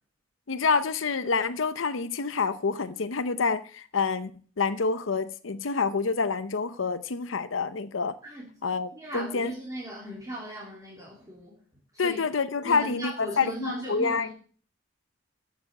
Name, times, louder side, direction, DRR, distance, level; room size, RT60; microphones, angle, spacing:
voice 1, 0.5-4.3 4.6-8.2 8.6-9.5 12.0-14.3, left 4 dB, 85° left, 0.7 m, -27 dB
voice 2, 8.9-11.6 11.9-12.2 12.6-14.3, right 1 dB, 20° right, 3.3 m, -38 dB
14.5 x 7.1 x 6.6 m
head